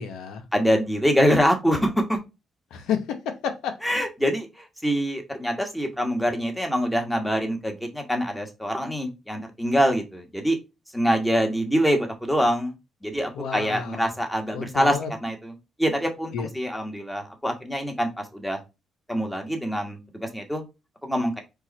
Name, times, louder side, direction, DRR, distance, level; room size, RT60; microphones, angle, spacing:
voice 1, 0.0-0.4 2.7-3.7 13.3-14.1 14.5-15.1 16.3-16.5, left 7 dB, 85° left, 0.8 m, -30 dB
voice 2, 0.5-2.2 3.8-10.6 10.9-12.7 13.0-15.5 15.8-18.6 19.1-20.6 21.0-21.4, equal, 5° left, 1.3 m, -25 dB
4.7 x 2.5 x 4.1 m
cardioid pair, 90°, 0 cm